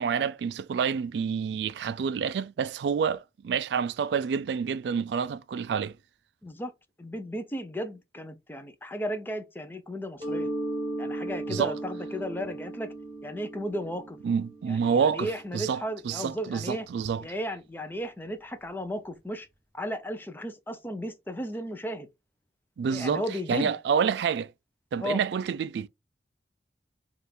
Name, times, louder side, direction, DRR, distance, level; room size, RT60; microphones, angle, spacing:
voice 1, 0.0-6.0 11.5-11.7 14.2-17.2 22.8-23.2 23.5-24.5 24.9-25.9, right 6 dB, 75° right, 0.3 m, -28 dB
voice 2, 7.0-10.5 11.0-12.9 13.2-14.2 14.7-16.9 17.2-19.5 19.7-22.1 22.9-23.7 25.0-25.2, equal, 10° left, 0.5 m, -35 dB
Mallet percussion, 10.2-15.7, right 1 dB, 30° right, 1.6 m, -36 dB
3.4 x 2.4 x 4.3 m
head